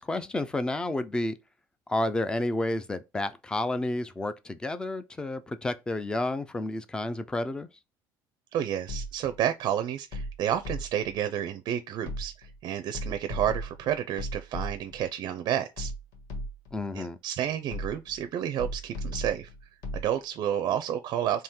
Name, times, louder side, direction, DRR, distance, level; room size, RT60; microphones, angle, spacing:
voice 1, 0.0-1.4 1.9-7.7 16.7-17.2, left 2 dB, 10° left, 0.4 m, -30 dB
voice 2, 8.5-15.9 16.9-19.5 19.9-21.4, right 10 dB, 55° right, 0.4 m, -30 dB
sound 1, 8.9-9.4 10.1-11.2 12.1-12.6 12.9-15.1 15.8-16.8 17.7-18.2 18.6-20.1, equal, 60° left, 1.5 m, -36 dB
3.6 x 2.8 x 4.2 m
cardioid pair, 150°, 8 cm